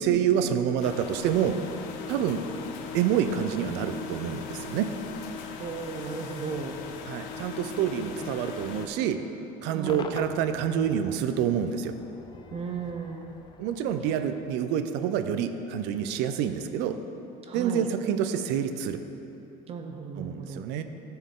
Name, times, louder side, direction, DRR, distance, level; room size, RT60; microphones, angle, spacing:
voice 1, 0.0-1.6 2.1-2.4 2.9-4.9 7.1-9.2 9.6-11.9 13.6-17.0 17.5-19.0 20.2-20.8, right 9 dB, 75° right, 9 dB, 0.5 m, -27 dB
sound 1, 0.8-8.9, left 5 dB, 80° left, 0.7 m, -39 dB
voice 2, 5.6-6.7 7.9-8.3 9.6-10.1 12.5-13.3 14.0-14.1 17.4-17.9 19.7-20.6, right 6 dB, 35° right, 4 dB, 0.5 m, -36 dB
Cheering / Crowd / Fireworks, 9.9-15.1, left 5 dB, 25° left, 0.4 m, -45 dB
12.5 x 4.5 x 3.7 m, 3.0 s
cardioid pair, 140°, 18 cm